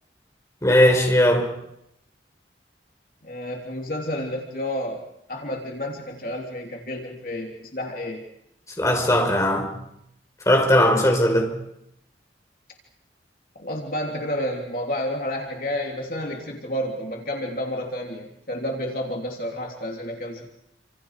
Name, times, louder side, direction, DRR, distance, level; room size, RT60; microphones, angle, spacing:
voice 1, 0.6-1.5 8.8-9.8 10.5-11.5, equal, 15° left, 4.7 m, -18 dB
voice 2, 3.2-5.0 5.3-8.2 13.5-20.5, left 1 dB, 50° left, 3.2 m, -30 dB
29.0 x 27.0 x 5.0 m
head